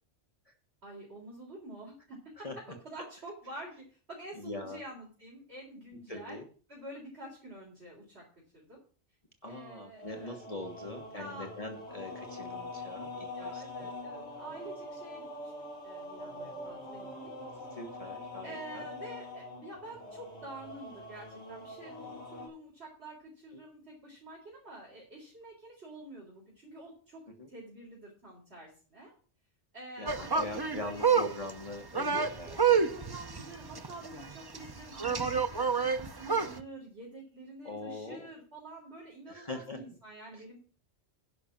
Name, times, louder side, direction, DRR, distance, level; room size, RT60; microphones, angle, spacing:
voice 1, 0.8-2.2 2.8-6.4 6.7-8.2 8.5-8.8 9.5-10.4 11.1-11.5 13.3-15.5 15.8-17.1 18.4-27.2 27.5-29.1 29.7-31.1 32.0-40.6, right 1 dB, 65° right, -4 dB, 4.3 m, -48 dB
voice 2, 4.3-4.8 6.1-6.4 9.4-13.9 17.7-18.9 23.5-23.6 27.3-27.5 30.0-32.8 37.6-38.3 39.3-39.8 40.3-40.4, left 2 dB, 30° left, 2 dB, 1.5 m, -42 dB
sound 1, 9.9-22.5, left 2 dB, 70° left, 5.7 m, -44 dB
sound 2, 30.1-36.6, right 6 dB, 25° right, 0.6 m, -29 dB
11.0 x 5.9 x 7.3 m, 0.40 s
omnidirectional pair, 1.2 m